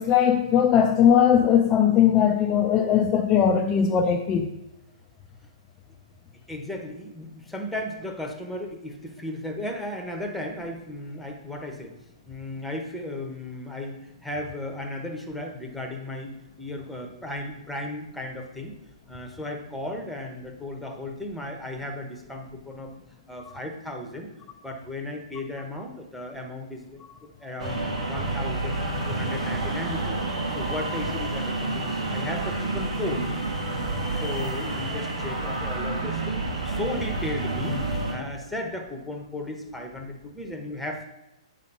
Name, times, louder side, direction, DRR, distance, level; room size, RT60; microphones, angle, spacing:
voice 1, 0.0-4.5, left 8 dB, 20° left, 3 dB, 0.5 m, -19 dB
voice 2, 6.5-11.9 12.3-18.7 19.1-22.9 23.3-24.3 24.6-27.8 28.1-30.2 30.5-33.2 33.6-37.8 38.1-41.0, left 1 dB, ahead, 2 dB, 1.0 m, -35 dB
sound 1, 27.6-38.1, right 2 dB, 80° right, 2.6 m, -29 dB
8.0 x 4.2 x 5.5 m, 0.91 s
hypercardioid pair, 140°, 3 cm